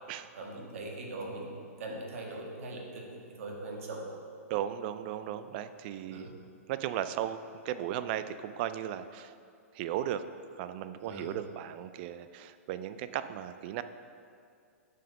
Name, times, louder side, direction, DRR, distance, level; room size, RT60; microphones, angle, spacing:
voice 1, 0.3-4.1 6.1-6.3 11.0-11.4, right 2 dB, 60° right, 0 dB, 1.5 m, -41 dB
voice 2, 4.5-6.3 6.7-7.4 7.6-9.3 9.7-10.2 10.6-13.8, right 11 dB, 40° right, 12 dB, 0.4 m, -36 dB
6.0 x 4.6 x 6.5 m, 2.3 s
hypercardioid pair, 125°, 8 cm